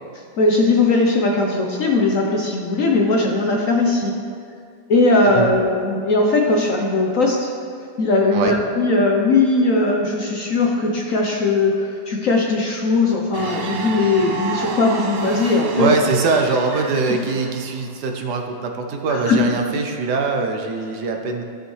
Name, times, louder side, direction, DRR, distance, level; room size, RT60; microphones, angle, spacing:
voice 1, 0.4-4.1 4.9-7.5 8.0-15.9 19.1-19.4, left 3 dB, 60° left, 0 dB, 0.9 m, -19 dB
sound 1, 13.3-18.0, right 4 dB, 80° right, 0.5 m, -31 dB
voice 2, 15.8-21.4, right 4 dB, 65° right, 3 dB, 1.2 m, -22 dB
14.0 x 6.4 x 3.2 m, 2.3 s
omnidirectional pair, 2.0 m